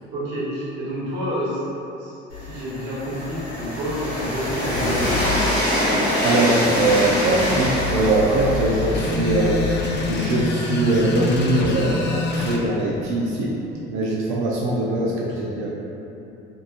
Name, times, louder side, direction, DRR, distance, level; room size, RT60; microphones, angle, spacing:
voice 1, 0.1-1.6 2.0-5.4 8.2-8.4, equal, 70° right, -8 dB, 1.0 m, -29 dB
Train, 2.3-12.1, left 1 dB, 90° left, 1.0 m, -25 dB
voice 2, 6.2-13.6 13.9-15.7, right 2 dB, 40° right, -4 dB, 0.4 m, -22 dB
sound 1, 8.9-12.6, left 2 dB, 35° left, 0.4 m, -26 dB
2.9 x 2.0 x 2.3 m, 2.9 s
hypercardioid pair, 60°, 31 cm